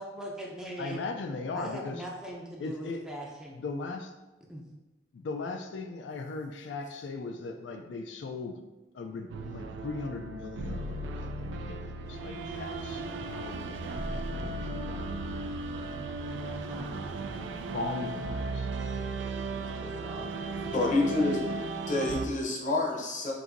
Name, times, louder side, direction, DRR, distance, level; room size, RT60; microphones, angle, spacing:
voice 1, 0.0-1.0 1.5-3.6 4.5-4.7 16.7-16.9 19.8-20.3, equal, 5° right, -2 dB, 0.5 m, -41 dB
voice 2, 0.8-2.0 2.6-3.0 3.5-4.1 5.1-8.6 8.9-13.0 13.3-15.4 15.7-16.7 17.7-18.7, left 3 dB, 75° left, 4 dB, 0.4 m, -39 dB
sound 1, 9.3-22.3, right 3 dB, 80° right, 0.3 m, -36 dB
voice 3, 20.7-21.4 21.9-23.3, left 2 dB, 45° left, -1 dB, 0.7 m, -27 dB
5.9 x 2.6 x 2.5 m, 1.1 s
head